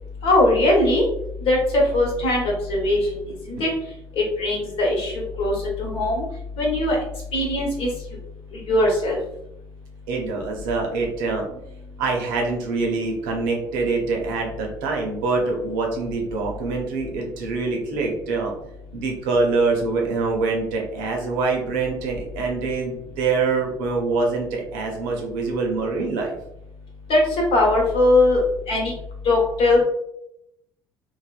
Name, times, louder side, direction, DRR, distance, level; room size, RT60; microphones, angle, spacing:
voice 1, 0.2-1.0 1.4-3.1 3.5-3.7 4.2-6.2 6.6-7.0 7.3-7.9 8.5-9.2 27.1-27.2 27.5-28.4 28.7-28.9 29.2-29.8, left 2 dB, 60° left, -2 dB, 1.1 m, -20 dB
voice 2, 10.1-11.5 12.0-18.5 18.9-26.4, right 3 dB, 80° right, 0 dB, 0.7 m, -25 dB
3.3 x 2.1 x 2.4 m, 0.81 s
hypercardioid pair, 60°, 11 cm